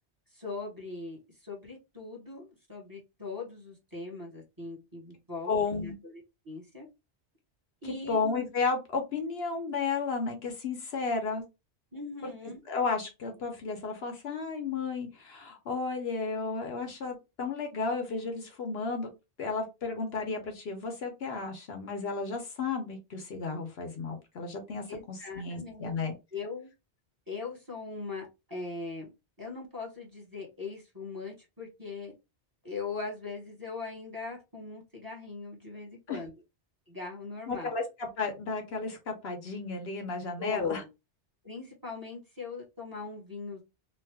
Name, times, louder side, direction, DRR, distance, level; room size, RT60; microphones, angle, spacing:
voice 1, 0.3-6.9 7.8-8.2 11.9-12.6 24.9-25.9 26.3-26.7 27.3-29.1 29.4-32.1 32.6-36.3 36.9-37.8 40.4-40.8 41.4-43.6, left 4 dB, 20° right, -4 dB, 1.2 m, -40 dB
voice 2, 5.5-5.9 7.8-11.4 12.2-19.1 19.4-26.1 36.1-36.2 37.5-40.8, left 4 dB, 65° left, 4 dB, 1.0 m, -33 dB
3.2 x 2.1 x 3.3 m, 0.25 s
omnidirectional pair, 1.1 m